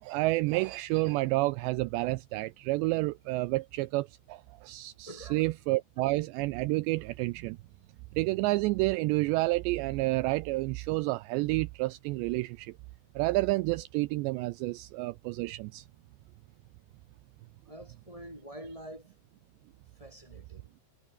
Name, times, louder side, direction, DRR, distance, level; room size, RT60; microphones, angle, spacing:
voice 1, 0.0-7.6 8.1-12.7 13.2-15.9, right 21 dB, 80° right, 2.7 m, -29 dB
voice 2, 5.0-5.5 17.6-19.1 19.9-20.7, equal, 5° left, 4.2 m, -46 dB
omnidirectional pair, 5.3 m